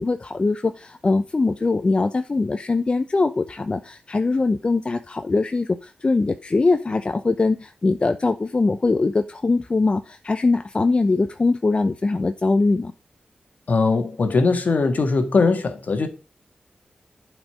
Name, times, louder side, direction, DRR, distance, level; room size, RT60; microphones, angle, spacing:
voice 1, 0.0-12.9, left 3 dB, 35° left, 0.6 m, -22 dB
voice 2, 13.7-16.1, left 4 dB, 60° left, 1.8 m, -20 dB
11.0 x 5.2 x 5.0 m
wide cardioid pair, 100°, 3 cm